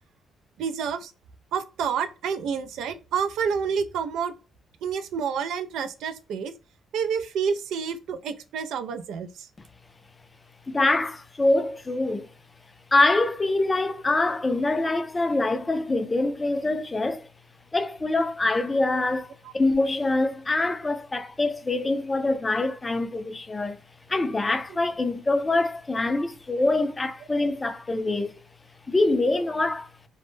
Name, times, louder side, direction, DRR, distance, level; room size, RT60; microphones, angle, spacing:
voice 1, 0.6-1.1 1.5-4.3 4.8-6.5 6.9-9.5 19.4-19.5 24.7-24.8, right 6 dB, 80° right, 0.3 m, -29 dB
voice 2, 10.7-12.3 12.9-17.2 17.7-23.8 24.1-28.3 28.9-29.9, left 2 dB, 20° left, 0.4 m, -24 dB
2.1 x 2.0 x 3.0 m
cardioid pair, 90°, 0 cm